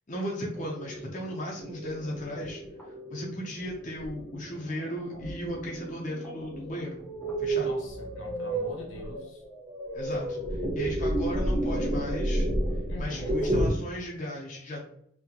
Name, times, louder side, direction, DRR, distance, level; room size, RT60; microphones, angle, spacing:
voice 1, 0.1-7.0 7.4-7.7 9.9-12.5 13.0-14.8, equal, 35° left, -3 dB, 0.5 m, -36 dB
sound 1, 0.5-13.7, right 1 dB, 5° left, 0.9 m, -32 dB
voice 2, 7.6-9.4 12.9-13.4, left 1 dB, 75° left, 1 dB, 0.9 m, -42 dB
3.7 x 2.2 x 2.8 m, 0.68 s
head